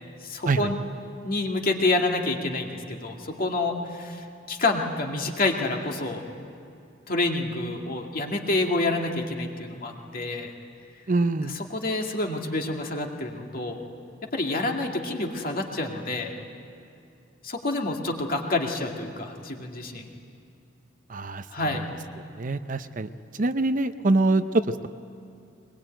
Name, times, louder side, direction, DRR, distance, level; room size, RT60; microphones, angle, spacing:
voice 1, 0.2-0.8 1.2-6.2 7.1-10.5 11.5-13.8 14.3-16.4 17.4-20.0 21.5-21.8, left 2 dB, 50° left, 2 dB, 2.2 m, -28 dB
voice 2, 11.1-11.5 21.1-21.4 21.7-21.9 22.4-23.1 23.4-24.9, right 2 dB, 45° right, 10 dB, 0.7 m, -24 dB
21.5 x 21.5 x 9.0 m, 2.5 s
head